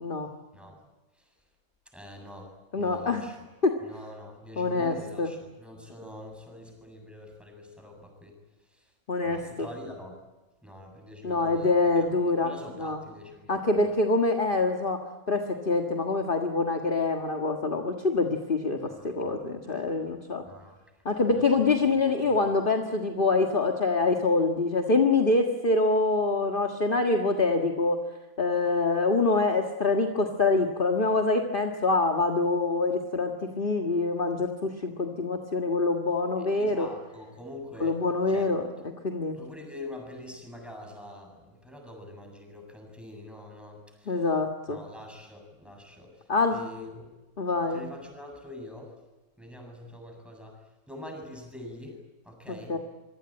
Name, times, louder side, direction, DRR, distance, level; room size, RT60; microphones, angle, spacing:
voice 1, 1.9-3.4 3.8-8.4 8.7-8.9 9.2-10.2 10.6-12.1 12.4-14.0 18.8-19.4 20.5-20.8 21.7-22.2 36.5-38.0 38.3-38.5 39.3-44.3 44.7-46.2 46.5-47.1 47.6-48.9 49.4-52.0 52.2-52.8, left 1 dB, ahead, 3 dB, 7.5 m, -45 dB
voice 2, 2.7-3.2 3.6-3.7 4.6-5.3 9.1-9.7 11.2-12.5 12.8-13.0 13.5-15.0 15.3-20.4 21.1-28.0 28.4-36.9 37.8-38.6 39.0-39.4 44.1-44.8 46.3-46.6 47.4-47.9 52.7-52.8, left 3 dB, 40° left, 3 dB, 1.8 m, -25 dB
26.0 x 23.5 x 8.9 m, 1.1 s
omnidirectional pair, 1.5 m